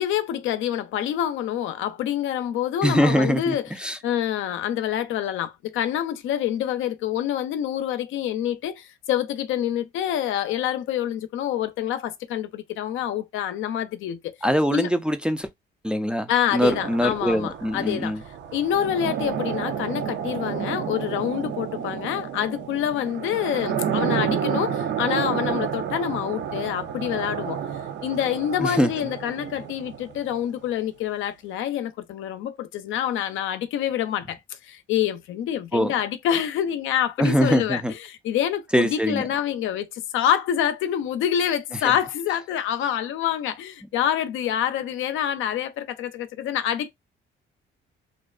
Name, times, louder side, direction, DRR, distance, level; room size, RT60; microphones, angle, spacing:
voice 1, 0.0-14.3 14.7-14.9 16.3-18.2 18.5-27.6 28.0-34.4 34.6-46.9, left 10 dB, 85° left, 0.4 m, -26 dB
voice 2, 2.8-3.5 3.8-4.0 14.4-15.5 15.8-18.2 28.6-28.9 35.7-35.9 37.2-37.9 38.7-39.2 41.8-41.9, equal, 5° right, 0.3 m, -22 dB
sound 1, 16.6-30.4, right 8 dB, 65° right, 0.5 m, -30 dB
2.5 x 2.1 x 2.3 m
cardioid pair, 90°, 20 cm